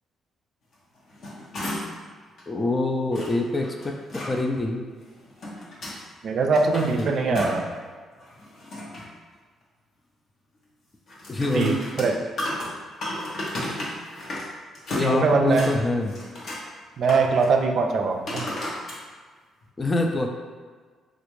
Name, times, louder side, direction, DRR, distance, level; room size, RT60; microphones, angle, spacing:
sound 1, 0.9-2.1 2.4-2.5 3.1-4.3 5.1-6.0 6.4-7.8 8.1-9.1 11.1-14.5 14.7-15.7 16.1-16.6 17.0-17.5 18.3-19.0 19.6-19.7, left 1 dB, 60° left, 0.9 m, -34 dB
voice 1, 2.5-4.9 7.0-7.4 11.3-11.8 14.9-16.2 19.8-20.3, left 2 dB, 25° left, 2 dB, 0.4 m, -25 dB
voice 2, 6.2-7.7 11.5-12.2 15.0-15.7 17.0-18.4, right 4 dB, 60° right, 3 dB, 0.3 m, -22 dB
3.3 x 2.4 x 3.0 m, 1.5 s
cardioid pair, 90°, 0 cm